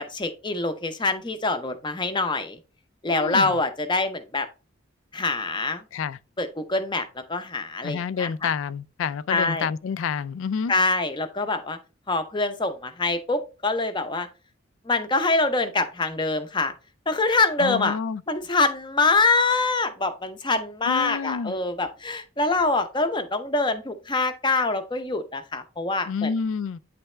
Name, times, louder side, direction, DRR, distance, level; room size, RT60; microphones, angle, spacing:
voice 1, 0.0-2.6 3.0-4.5 5.1-5.8 6.4-8.5 9.3-9.7 10.7-11.8 12.1-14.3 14.9-16.7 17.1-18.0 18.3-26.3, left 3 dB, 25° left, 0.6 m, -25 dB
voice 2, 3.1-3.6 5.9-6.2 7.8-10.7 17.6-18.2 20.8-21.5 26.1-26.8, left 6 dB, 75° left, 0.3 m, -28 dB
9.0 x 3.4 x 3.2 m
head